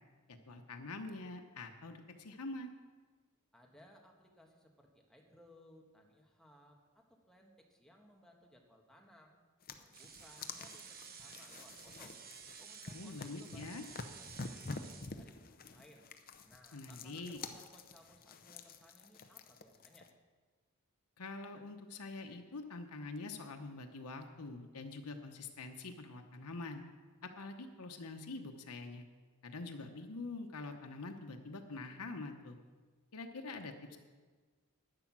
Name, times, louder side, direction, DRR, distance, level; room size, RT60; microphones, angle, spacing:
voice 1, 0.3-2.7 12.9-13.8 16.7-17.4 21.2-26.8 27.2-29.0 29.4-32.6 33.1-34.0, left 3 dB, 85° left, 4 dB, 1.0 m, -45 dB
voice 2, 3.5-9.4 9.7-12.2 12.6-14.4 14.6-16.1 16.4-20.1, equal, ahead, 1 dB, 1.6 m, -62 dB
sound 1, 9.6-20.1, left 3 dB, 40° left, 0.7 m, -49 dB
sound 2, 9.9-15.1, right 6 dB, 45° right, 1.1 m, -53 dB
11.5 x 9.1 x 6.1 m, 1.4 s
head